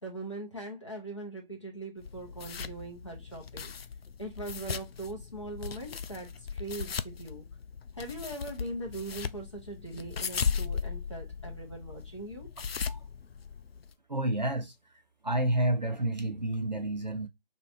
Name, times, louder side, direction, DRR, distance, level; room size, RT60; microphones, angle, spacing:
voice 1, 0.0-3.7 4.2-7.5 7.9-12.5, right 2 dB, 30° left, 1.0 m, -41 dB
sound 1, 2.0-13.9, left 6 dB, 90° left, 0.5 m, -37 dB
voice 2, 14.1-14.7 15.2-17.3, right 1 dB, 45° right, 0.7 m, -29 dB
3.1 x 2.9 x 4.2 m
figure-of-eight pair, 180°, 30 cm